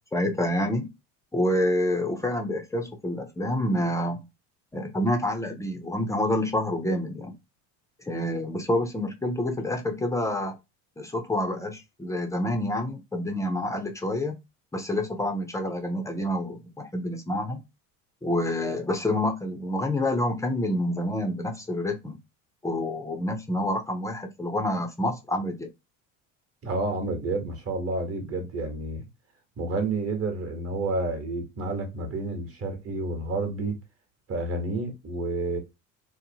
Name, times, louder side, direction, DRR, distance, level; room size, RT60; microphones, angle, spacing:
voice 1, 0.1-0.9 1.3-4.3 4.7-7.3 8.0-10.6 11.0-14.4 14.7-17.6 18.2-22.2 22.6-25.7, left 1 dB, 10° left, 0.4 m, -28 dB
voice 2, 26.6-29.0 29.6-33.8 34.3-35.6, right 2 dB, 40° right, 1.0 m, -30 dB
2.7 x 2.1 x 2.6 m
supercardioid pair, 105°, 36 cm